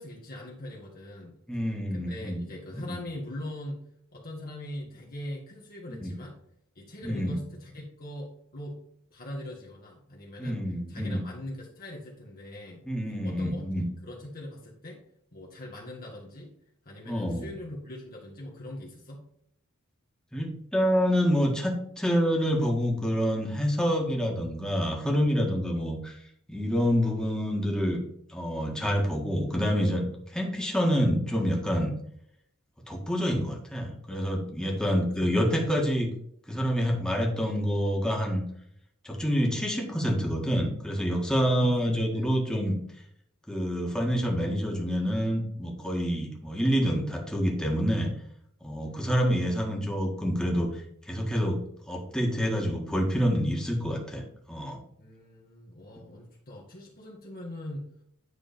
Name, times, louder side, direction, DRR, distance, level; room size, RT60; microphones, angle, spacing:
voice 1, 0.0-1.3 1.9-3.8 4.1-6.4 6.8-8.8 9.1-10.6 10.9-12.9 13.2-15.0 15.3-16.5 16.9-19.3 34.6-34.8 35.2-35.4 41.4-42.5 48.8-49.6 55.0-57.9, left 1 dB, 45° left, -3 dB, 1.6 m, -41 dB
voice 2, 1.5-2.4 2.8-3.0 5.9-6.1 7.0-7.4 10.4-11.2 12.9-13.8 17.1-17.5 20.3-26.2 26.5-28.0 28.3-30.1 30.3-31.9 32.9-36.1 36.5-38.4 39.0-42.8 43.5-48.1 48.6-50.7 51.1-51.6 51.9-54.2 54.5-54.8, equal, 5° left, -1 dB, 1.7 m, -27 dB
9.7 x 3.8 x 5.1 m, 0.69 s
head